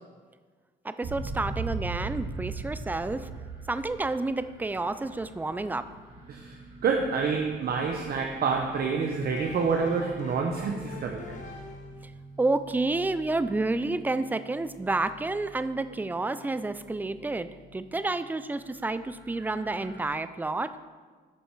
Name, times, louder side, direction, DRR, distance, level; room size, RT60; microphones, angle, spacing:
voice 1, 0.8-3.3 3.7-5.9 12.4-20.8, right 2 dB, 10° right, 12 dB, 0.3 m, -30 dB
sound 1, 1.0-18.0 18.5-20.0, right 3 dB, 85° right, 1.9 m, -42 dB
voice 2, 6.8-11.4, right 5 dB, 50° right, 2 dB, 0.7 m, -28 dB
sound 2, 8.7-12.1, left 3 dB, 40° left, 1.1 m, -45 dB
8.5 x 5.3 x 4.6 m, 1.5 s
cardioid pair, 90°, 20 cm